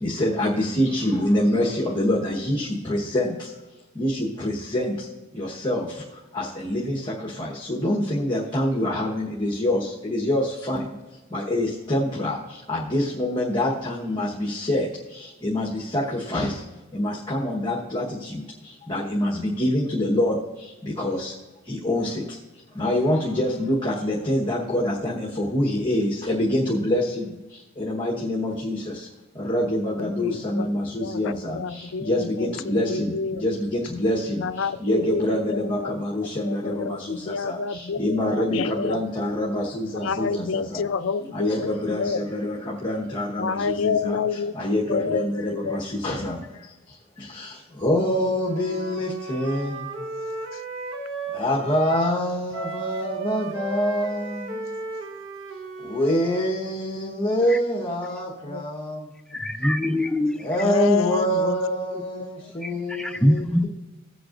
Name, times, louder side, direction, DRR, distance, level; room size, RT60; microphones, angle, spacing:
voice 1, 0.0-3.3 4.0-4.9 5.3-5.8 6.3-10.8 11.3-12.4 12.7-14.9 15.4-16.6 16.9-18.4 18.9-20.4 21.0-21.3 21.7-22.1 22.8-27.2 27.8-28.9 29.4-31.6 32.0-34.4 34.8-40.8 41.3-44.2 44.5-46.4 47.3-47.5 47.8-49.7 51.3-54.4 55.9-59.0 60.4-63.7, left 1 dB, 25° left, -4 dB, 1.2 m, -25 dB
voice 2, 30.2-30.7 31.0-32.1 32.7-33.4 34.4-36.0 36.5-39.0 40.0-42.2 43.4-44.5 44.9-45.2 45.7-45.8 58.5-58.6 60.6-61.8 62.1-62.3, left 5 dB, 70° left, 14 dB, 0.4 m, -28 dB
Wind instrument woodwind instrument, 48.4-52.2 52.5-56.5, right 2 dB, 60° right, 1.2 m, -35 dB
voice 3, 59.3-60.4 62.6-63.7, left 1 dB, 5° left, 5 dB, 0.5 m, -23 dB
16.5 x 8.0 x 2.5 m, 1.1 s
head